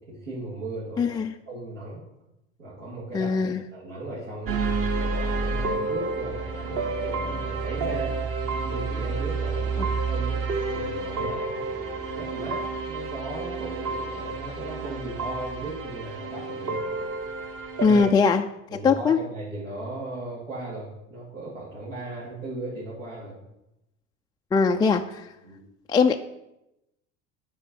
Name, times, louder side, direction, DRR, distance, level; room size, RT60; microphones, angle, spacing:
voice 1, 0.0-1.2 1.5-2.0 2.6-8.1 8.6-16.8 17.8-18.0 18.7-23.4 25.4-25.6, right 2 dB, 75° right, -8 dB, 3.0 m, -37 dB
voice 2, 1.0-1.3 3.1-3.6 17.8-18.4 18.8-19.2 24.5-25.3 25.9-26.1, left 5 dB, 10° left, 3 dB, 0.3 m, -21 dB
sound 1, 4.5-18.1, right 3 dB, 40° right, 1.4 m, -30 dB
9.1 x 5.0 x 5.5 m, 0.88 s
hypercardioid pair, 75°, 37 cm